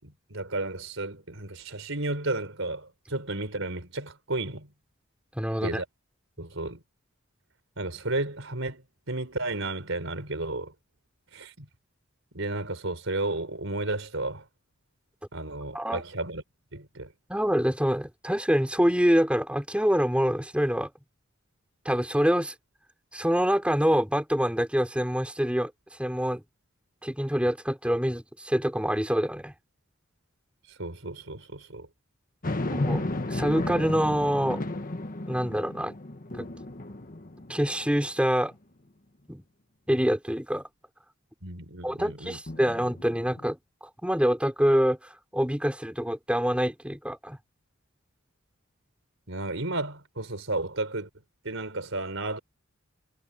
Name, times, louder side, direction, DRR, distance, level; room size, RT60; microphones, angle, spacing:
voice 1, 0.0-4.7 5.6-5.8 6.4-6.8 7.8-10.7 11.3-11.7 12.3-14.4 15.3-16.4 16.7-17.1 30.8-31.9 41.4-42.4 49.3-51.1 51.4-52.4, right 2 dB, 75° right, 4.8 m, -33 dB
voice 2, 5.4-5.8 15.7-16.0 17.3-20.9 21.9-22.5 23.1-25.7 26.0-26.4 27.0-29.5 32.7-34.6 35.3-35.9 36.4-36.5 37.5-38.5 39.3-39.4 39.9-40.7 41.8-43.6 44.0-47.4, equal, 5° right, 5.8 m, -26 dB
sound 1, 32.4-38.0 38.5-38.6 42.5-43.5, left 2 dB, 45° left, 1.5 m, -33 dB
head